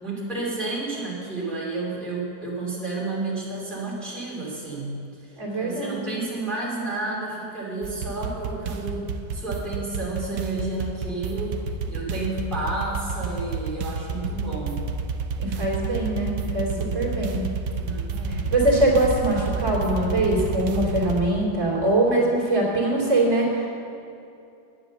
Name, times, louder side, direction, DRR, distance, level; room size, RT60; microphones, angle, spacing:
voice 1, 0.0-9.1 9.3-11.6 11.9-14.8 16.7-17.2 17.8-18.5, right 3 dB, ahead, -6 dB, 2.6 m, -31 dB
voice 2, 5.4-6.0 15.4-17.4 18.3-23.7, right 1 dB, 40° right, -5 dB, 2.9 m, -23 dB
sound 1, 7.8-21.2, right 4 dB, 65° right, 1.1 m, -30 dB
11.0 x 9.0 x 6.9 m, 2.6 s
omnidirectional pair, 2.0 m